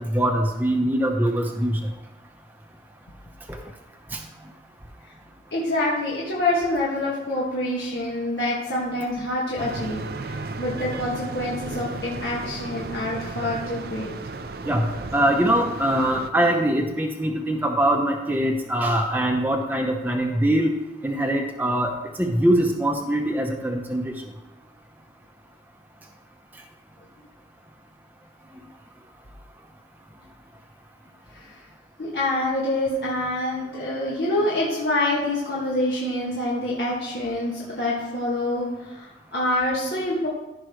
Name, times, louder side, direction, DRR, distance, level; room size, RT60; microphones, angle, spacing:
voice 1, 0.0-1.8 4.1-4.2 14.7-14.8 15.1-20.7 21.0-21.9 22.2-24.1, right 1 dB, 10° right, 1 dB, 0.8 m, -22 dB
voice 2, 5.5-14.1 31.3-31.5 32.0-40.3, left 1 dB, 70° left, -7 dB, 1.9 m, -26 dB
sound 1, 9.6-16.3, right 3 dB, 55° right, 0.5 m, -34 dB
14.5 x 5.5 x 3.2 m, 1.0 s
head